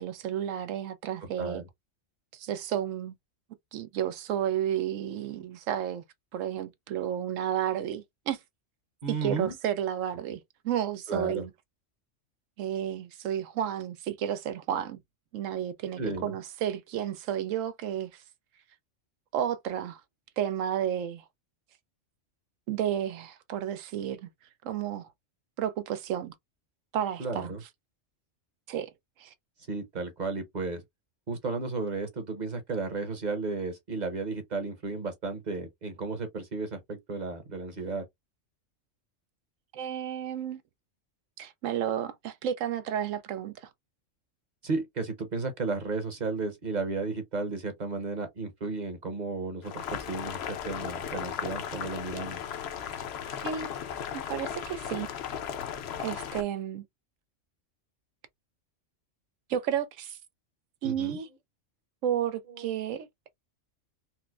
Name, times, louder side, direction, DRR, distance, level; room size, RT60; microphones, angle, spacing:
voice 1, 0.0-1.6 2.3-3.2 3.7-6.0 6.3-8.4 9.1-10.4 10.6-11.5 12.6-15.0 15.3-18.2 19.3-20.0 20.4-21.2 22.7-24.3 24.6-25.1 25.6-26.3 26.9-27.5 28.7-28.9 29.2-29.3 39.7-40.6 41.4-43.7 53.4-53.7 54.1-55.1 56.0-56.8 59.5-60.2 60.8-61.3 62.0-63.1, right 10 dB, 85° right, 1.0 m, -32 dB
voice 2, 9.0-9.5 11.1-11.4 16.0-16.3 27.2-27.6 29.7-30.8 31.3-38.0 44.6-52.4 60.8-61.2 62.5-62.7, right 3 dB, 40° right, 0.9 m, -33 dB
Boiling, 49.6-56.4, left 8 dB, 65° left, 0.8 m, -36 dB
4.3 x 2.0 x 2.3 m
omnidirectional pair, 1.3 m